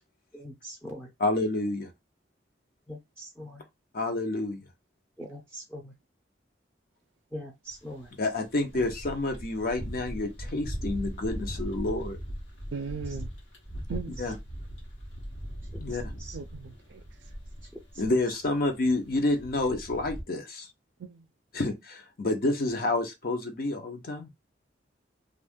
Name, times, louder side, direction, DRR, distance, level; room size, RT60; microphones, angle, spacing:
voice 1, 0.3-1.1 2.9-3.6 5.2-5.9 7.3-8.1 16.2-16.4, equal, 5° left, 0.5 m, -42 dB
voice 2, 1.2-1.9 3.9-4.6 8.2-12.2 14.2-14.4 15.8-16.0 18.0-20.7 21.5-24.3, left 2 dB, 55° left, 0.7 m, -29 dB
sound 1, 7.7-20.2, equal, 75° left, 1.2 m, -39 dB
voice 3, 12.7-13.3 13.9-14.2 16.3-17.0 21.0-21.2, right 5 dB, 75° right, 0.4 m, -37 dB
2.6 x 2.4 x 3.5 m
head